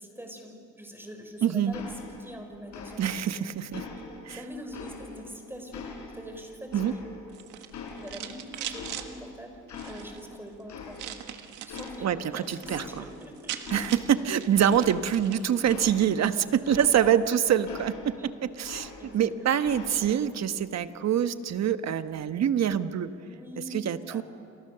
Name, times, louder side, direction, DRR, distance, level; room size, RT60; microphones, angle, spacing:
voice 1, 0.0-1.8 2.2-3.0 3.4-3.5 4.3-5.9 6.1-7.1 8.0-11.1 11.6-13.6 16.3-17.6 18.1-18.3 19.0-19.6 23.2-24.2, equal, 5° right, 4 dB, 5.6 m, -43 dB
voice 2, 1.4-1.8 3.0-3.8 4.3-4.4 6.7-6.9 12.0-13.1 13.7-23.1 23.7-24.2, right 9 dB, 60° right, 11 dB, 1.2 m, -25 dB
sound 1, 1.7-2.4 2.7-3.3 3.7-5.3 5.7-7.4 7.7-9.3 9.7-10.4 10.7-11.3 11.7-12.3 12.6-13.3 13.6-17.3 17.7-19.3 19.6-20.3, left 4 dB, 70° left, 5.4 m, -43 dB
sound 2, 7.3-9.1 9.7-10.2 11.0-12.0 12.3-12.7 13.0-13.1 13.2-15.5, right 11 dB, 90° right, 1.7 m, -40 dB
29.0 x 27.5 x 6.8 m, 2.7 s
cardioid pair, 90°, 30 cm